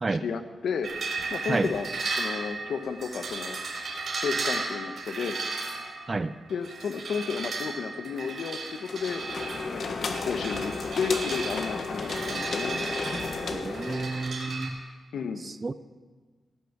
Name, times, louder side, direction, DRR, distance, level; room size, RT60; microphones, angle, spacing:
voice 1, 0.1-0.9 1.3-1.9 2.2-3.6 4.2-5.4 6.5-9.2 9.7-12.8 15.1-15.5, left 6 dB, 85° left, 8 dB, 1.1 m, -32 dB
sound 1, 0.8-14.7, right 3 dB, 50° right, 4.1 m, -35 dB
sound 2, 8.9-14.4, left 4 dB, 55° left, 1.3 m, -33 dB
voice 2, 13.5-14.8 15.6-15.7, right 3 dB, 25° right, 13 dB, 0.4 m, -29 dB
17.5 x 9.7 x 7.1 m, 1.3 s
wide cardioid pair, 165°, 0 cm